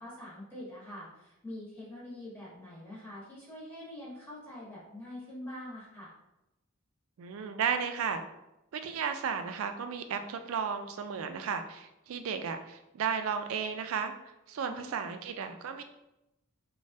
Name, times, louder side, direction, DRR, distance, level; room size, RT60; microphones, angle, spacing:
voice 1, 0.0-6.1 14.6-15.1, left 1 dB, 10° left, -8 dB, 0.9 m, -45 dB
voice 2, 7.2-8.2 8.7-14.2 14.5-15.8, right 6 dB, 85° right, 8 dB, 0.3 m, -34 dB
3.2 x 2.2 x 2.6 m, 0.92 s
head